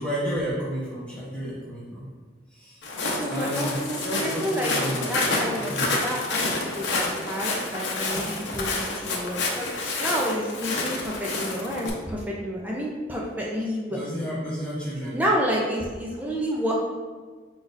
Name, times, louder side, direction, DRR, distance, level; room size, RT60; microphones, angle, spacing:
voice 1, 0.0-2.1 2.5-2.8 3.3-5.1 5.6-5.9 13.9-15.2, equal, 5° left, -8 dB, 1.0 m, -31 dB
Walk footsteps, 2.8-11.9, left 2 dB, 75° left, 0.8 m, -28 dB
voice 2, 3.2-4.7 5.1-5.7 6.0-14.0 15.1-16.8, equal, 10° right, -3 dB, 0.5 m, -29 dB
4.7 x 4.2 x 2.6 m, 1.4 s
head